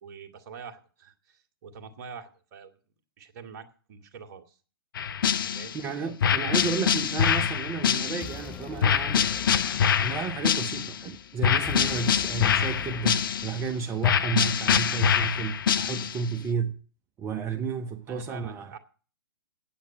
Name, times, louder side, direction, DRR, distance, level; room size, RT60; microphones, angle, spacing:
voice 1, 0.0-2.7 3.2-4.6 5.4-5.8 6.4-6.7 18.1-18.8, right 6 dB, 45° right, 1.8 m, -45 dB
sound 1, 5.0-5.8 6.2-8.4 8.8-11.0 11.4-13.6 14.0-16.3, left 7 dB, 60° left, 0.9 m, -25 dB
voice 2, 5.7-9.4 10.0-16.8 17.2-18.8, right 6 dB, 20° right, 0.7 m, -32 dB
sound 2, 8.1-14.1, left 7 dB, 10° left, 0.7 m, -45 dB
8.9 x 8.4 x 9.1 m
figure-of-eight pair, 120°, 12 cm